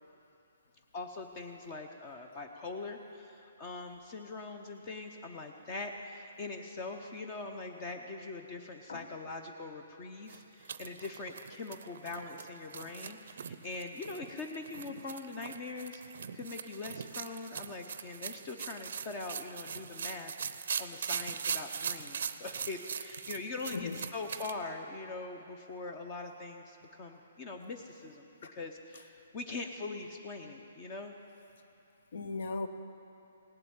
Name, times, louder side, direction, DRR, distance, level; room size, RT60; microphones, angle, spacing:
voice 1, 0.9-20.3 20.8-31.1, left 3 dB, 25° left, 4 dB, 0.7 m, -42 dB
sound 1, 10.3-24.5, right 7 dB, 60° right, 0.6 m, -41 dB
voice 2, 23.7-24.0 28.4-28.6 32.1-32.7, left 3 dB, 65° left, 9 dB, 1.1 m, -37 dB
17.0 x 7.9 x 8.8 m, 3.0 s
hypercardioid pair, 165°, 0 cm